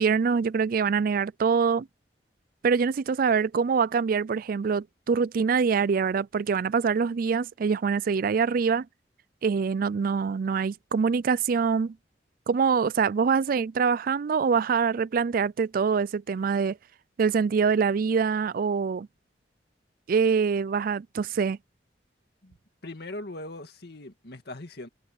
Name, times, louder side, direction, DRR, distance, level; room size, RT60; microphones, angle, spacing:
voice 1, 0.0-1.9 2.6-8.9 9.4-12.0 12.5-16.8 17.2-19.1 20.1-21.6, right 5 dB, 55° right, 0.4 m, -24 dB
voice 2, 22.8-24.9, left 2 dB, 65° left, 2.0 m, -40 dB
head